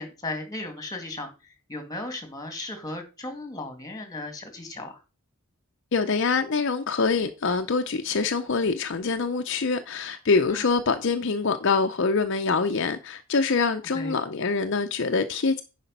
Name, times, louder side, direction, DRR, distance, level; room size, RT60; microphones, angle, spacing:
voice 1, 0.0-5.0 10.5-10.6 13.9-14.2, left 2 dB, 15° left, 2.1 m, -36 dB
voice 2, 5.9-15.6, left 4 dB, 55° left, 0.6 m, -25 dB
10.0 x 5.1 x 5.3 m
head